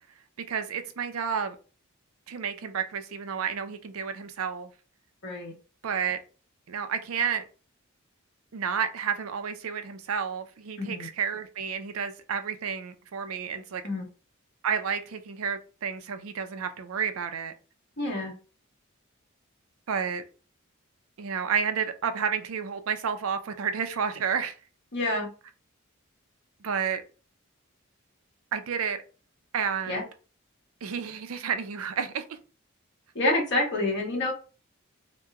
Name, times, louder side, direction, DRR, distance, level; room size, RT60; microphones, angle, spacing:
voice 1, 0.5-1.6 2.3-4.7 5.8-6.2 6.7-7.4 8.5-13.8 14.6-17.5 19.9-20.2 21.2-24.5 26.6-27.0 28.5-29.0 29.5-30.1 30.8-32.2, right 7 dB, 85° right, 0.5 m, -30 dB
voice 2, 10.8-11.1 13.8-14.1 18.0-18.3 24.9-25.3 29.9-30.0 33.1-34.3, left 2 dB, 55° left, 1.2 m, -27 dB
2.9 x 2.2 x 3.5 m
head